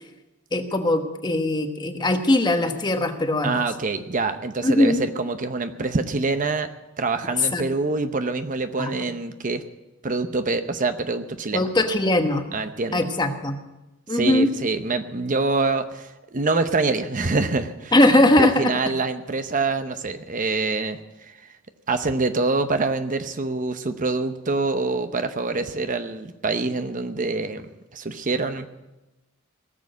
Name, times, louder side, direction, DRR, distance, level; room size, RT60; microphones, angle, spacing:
voice 1, 0.5-3.7 4.6-5.0 7.4-7.6 8.8-8.9 11.5-12.5 12.9-13.6 14.1-14.5 17.9-18.7, left 1 dB, 20° left, 6 dB, 1.2 m, -20 dB
voice 2, 3.4-6.7 7.0-9.6 10.0-11.7 12.5-13.0 14.1-17.9 18.4-21.0 21.3-21.4 21.9-28.7, right 3 dB, 40° right, 9 dB, 0.8 m, -25 dB
18.5 x 7.6 x 9.5 m, 1.0 s
head